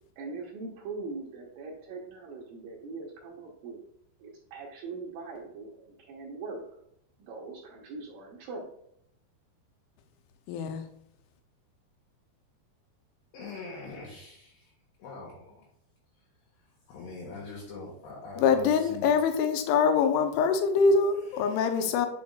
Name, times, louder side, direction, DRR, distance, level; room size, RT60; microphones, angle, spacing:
voice 1, 0.2-3.8 4.2-6.6 7.2-8.6, right 3 dB, 80° right, -2 dB, 2.0 m, -41 dB
voice 2, 10.5-10.8 18.4-22.1, left 5 dB, 85° left, 6 dB, 3.2 m, -24 dB
voice 3, 13.3-14.7 15.0-15.7 16.9-19.1 21.2-21.8, left 3 dB, 65° left, -3 dB, 3.3 m, -43 dB
9.3 x 6.9 x 2.3 m, 0.74 s
omnidirectional pair, 5.4 m